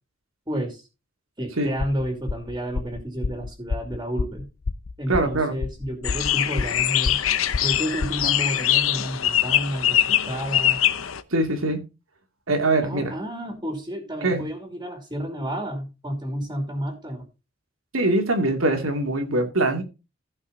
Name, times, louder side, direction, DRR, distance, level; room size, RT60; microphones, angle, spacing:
voice 1, 0.5-0.9 1.4-4.5 5.0-7.2 7.6-10.8 12.8-17.2, equal, 20° right, 3 dB, 2.6 m, -31 dB
sound 1, 1.8-8.4, left 4 dB, 50° left, 0.5 m, -30 dB
voice 2, 5.1-5.6 11.3-11.8 12.5-13.1 14.2-14.4 17.9-19.8, right 2 dB, 80° right, 5 dB, 2.6 m, -22 dB
sound 2, 6.0-11.2, left 11 dB, 75° left, 0.9 m, -23 dB
15.5 x 5.6 x 3.9 m, 0.29 s
head